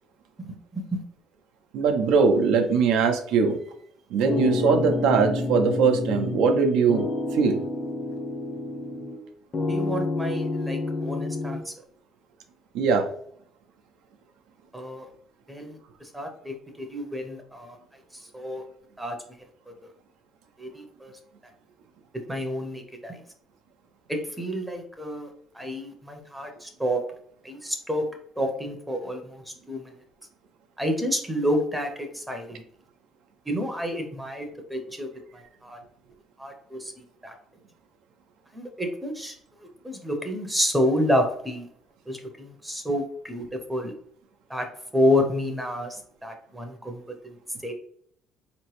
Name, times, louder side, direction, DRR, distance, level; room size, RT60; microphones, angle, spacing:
voice 1, 1.7-3.6 4.1-7.0 7.3-7.6 12.7-13.1, right 5 dB, 85° right, 4 dB, 0.7 m, -21 dB
sound 1, 4.3-6.6 6.9-9.2 9.5-11.6, left 2 dB, 30° left, 0.6 m, -29 dB
voice 2, 9.7-11.7 14.7-15.1 15.5-15.8 16.1-17.8 18.3-18.6 19.0-19.1 20.6-21.1 22.3-23.2 24.1-25.3 25.5-27.0 27.4-28.0 28.4-29.9 30.8-32.6 33.5-35.1 35.6-35.8 36.4-36.9 37.2-37.3 38.5-39.3 39.8-41.6 42.1-43.4 43.7-43.9 44.5-44.7 44.9-47.3 47.6-47.7, equal, 5° right, 3 dB, 0.6 m, -29 dB
4.2 x 2.9 x 3.1 m, 0.65 s
cardioid pair, 145°, 0 cm